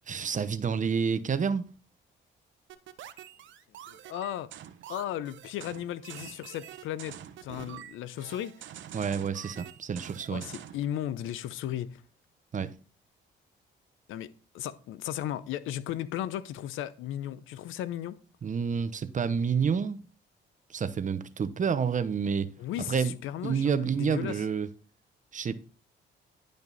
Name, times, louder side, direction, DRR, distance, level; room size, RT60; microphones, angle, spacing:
voice 1, 0.1-1.6 8.9-10.4 12.5-12.7 18.4-20.0 20.7-22.5 22.9-23.1 23.4-24.7 25.3-25.5, right 6 dB, 40° right, 0.8 m, -29 dB
sound 1, 2.7-10.9, right 11 dB, 75° right, 0.8 m, -46 dB
voice 2, 3.9-4.5 4.9-8.7 10.3-12.0 14.1-14.3 14.5-18.2 22.6-24.5, left 11 dB, 85° left, 0.7 m, -35 dB
10.5 x 5.2 x 4.1 m
cardioid pair, 90°, 20 cm